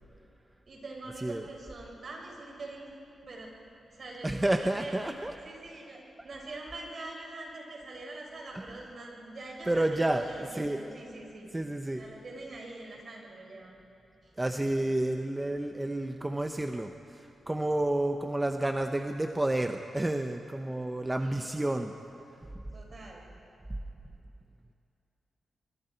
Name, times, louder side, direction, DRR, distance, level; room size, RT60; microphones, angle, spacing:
voice 1, 0.7-2.9 3.2-3.5 3.9-4.3 4.6-5.0 5.4-11.5 11.9-13.7 21.2-21.5 22.7-23.3, right 2 dB, 55° right, -1 dB, 5.8 m, -44 dB
voice 2, 4.2-5.3 8.5-8.8 9.7-10.9 11.5-12.0 14.4-21.9, right 1 dB, 15° right, 5 dB, 0.9 m, -30 dB
25.0 x 23.5 x 4.6 m, 2.8 s
cardioid pair, 65°, 0 cm